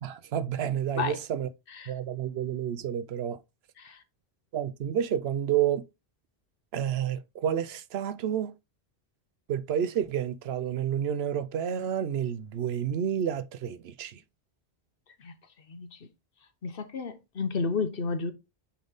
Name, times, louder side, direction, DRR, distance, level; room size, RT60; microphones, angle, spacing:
voice 1, 0.0-1.5 1.9-3.4 4.5-5.9 6.7-8.5 9.5-14.2, right 9 dB, 75° right, 0.8 m, -30 dB
voice 2, 16.6-18.3, left 4 dB, 60° left, 1.1 m, -31 dB
8.5 x 4.0 x 3.5 m
omnidirectional pair, 1.1 m